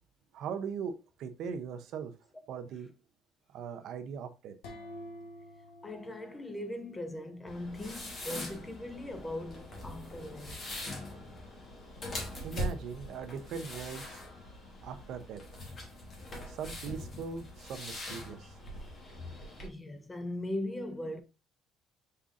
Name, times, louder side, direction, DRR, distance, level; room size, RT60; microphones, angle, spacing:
voice 1, 0.3-2.1 2.5-2.9 3.5-4.5 12.4-14.2 14.8-15.4 16.5-18.5, right 6 dB, 55° right, 0.6 m, -40 dB
sound 1, 4.6-7.4, equal, 85° left, 1.2 m, -49 dB
voice 2, 5.8-10.6 18.4-18.5 18.8-19.4 19.6-21.2, left 1 dB, 10° left, 0.4 m, -40 dB
sound 2, 7.5-19.7, left 1 dB, 30° left, 1.2 m, -42 dB
5.4 x 3.6 x 2.4 m
cardioid pair, 170°, 0 cm